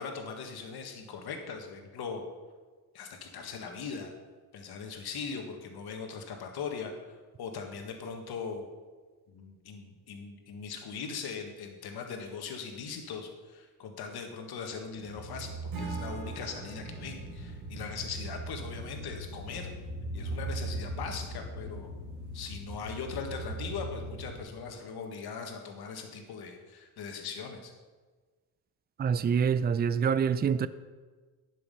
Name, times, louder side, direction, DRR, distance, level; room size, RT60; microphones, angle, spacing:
voice 1, 0.0-2.2 2.9-4.1 4.5-6.9 7.4-8.7 9.3-19.7 20.1-21.9 22.3-27.7, left 5 dB, 75° left, 1.8 m, -40 dB
sound 1, 15.0-24.4, right 2 dB, 45° right, 2.5 m, -39 dB
Acoustic guitar / Strum, 15.7-18.9, right 3 dB, 60° right, 3.0 m, -45 dB
voice 2, 29.0-30.7, right 7 dB, 25° right, 0.4 m, -26 dB
11.0 x 6.5 x 5.4 m
cardioid pair, 90°, 39 cm